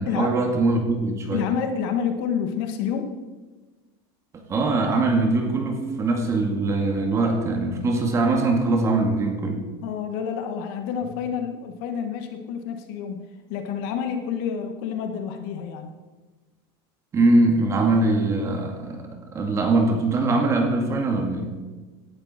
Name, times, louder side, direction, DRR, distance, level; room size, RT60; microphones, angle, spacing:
voice 1, 0.0-1.4 4.3-9.7 17.1-21.6, right 2 dB, 25° right, 3 dB, 2.3 m, -22 dB
voice 2, 1.3-3.1 9.8-13.2 13.5-15.9, left 7 dB, 60° left, 6 dB, 1.9 m, -28 dB
18.0 x 11.5 x 4.5 m, 1.3 s
supercardioid pair, 155°, 13 cm